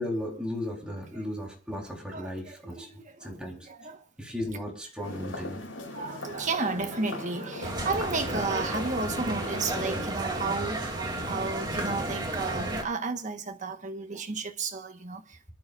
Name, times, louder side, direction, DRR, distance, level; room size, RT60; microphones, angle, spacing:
voice 1, 0.0-2.9 3.2-3.7 4.2-5.6, left 1 dB, 5° right, 3.8 m, -35 dB
voice 2, 2.1-4.0 5.9-15.5, right 3 dB, 40° right, 1.4 m, -33 dB
sound 1, 5.0-10.1, left 2 dB, 85° left, 5.4 m, -39 dB
sound 2, 7.6-12.8, right 1 dB, 20° right, 2.8 m, -32 dB
25.5 x 12.0 x 2.6 m
head